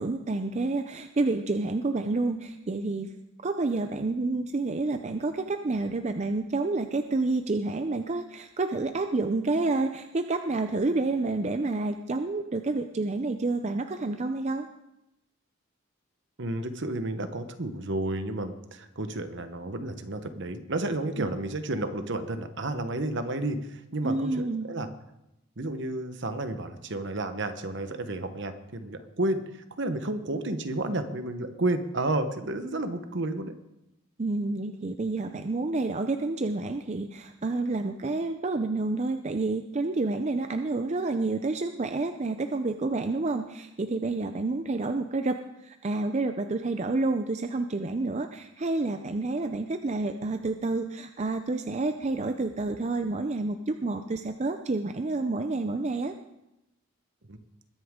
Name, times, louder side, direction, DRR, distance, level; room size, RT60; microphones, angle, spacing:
voice 1, 0.0-3.1 3.4-14.7 21.2-21.3 24.0-24.7 34.2-56.1, right 3 dB, 30° right, 7 dB, 0.5 m, -29 dB
voice 2, 16.4-24.9 25.6-33.5 57.3-57.4, right 2 dB, 55° right, 9 dB, 1.1 m, -31 dB
21.0 x 9.5 x 3.7 m, 0.89 s
head